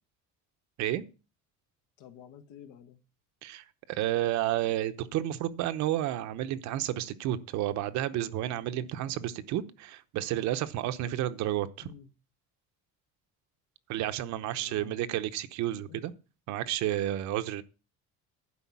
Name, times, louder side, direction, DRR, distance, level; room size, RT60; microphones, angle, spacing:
voice 1, 2.0-3.0 11.8-12.1 14.5-15.1 15.9-16.0, left 9 dB, 65° left, 1.4 m, -50 dB
voice 2, 3.4-11.9 13.9-16.1 16.5-17.6, right 13 dB, 60° right, 0.9 m, -31 dB
11.5 x 5.1 x 8.4 m
cardioid pair, 175°, 33 cm